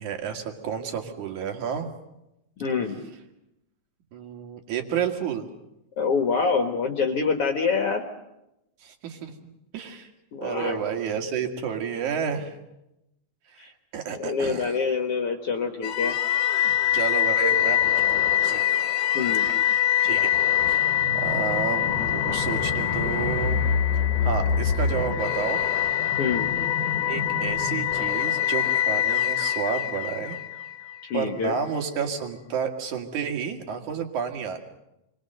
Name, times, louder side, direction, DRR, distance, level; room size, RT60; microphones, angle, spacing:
voice 1, 0.0-1.9 4.1-5.5 8.8-9.3 9.7-10.1 10.4-12.5 13.5-14.8 16.9-18.7 19.5-20.3 20.7-23.6 24.2-25.6 27.1-30.4 31.1-34.6, right 7 dB, 75° right, 4 dB, 3.5 m, -31 dB
voice 2, 2.6-3.0 6.0-8.0 10.3-10.8 13.6-13.7 14.1-16.2 19.1-19.5 26.2-26.5 31.0-31.6, left 5 dB, 55° left, 4 dB, 2.2 m, -26 dB
sound 1, 15.8-31.0, left 10 dB, 85° left, 2.8 m, -24 dB
28.5 x 23.0 x 6.6 m, 0.90 s
omnidirectional pair, 3.5 m